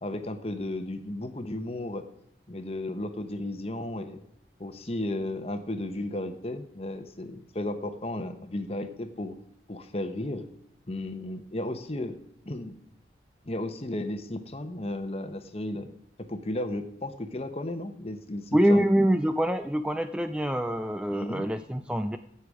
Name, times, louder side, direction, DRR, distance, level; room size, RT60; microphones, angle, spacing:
voice 1, 0.0-2.0 2.5-4.2 4.6-9.4 9.7-10.5 10.9-12.2 12.5-12.8 13.5-15.9 16.2-18.9 21.1-21.5, left 1 dB, 35° left, 9 dB, 1.0 m, -34 dB
voice 2, 18.5-22.2, equal, 5° right, 9 dB, 0.3 m, -25 dB
16.0 x 6.9 x 4.9 m, 0.74 s
head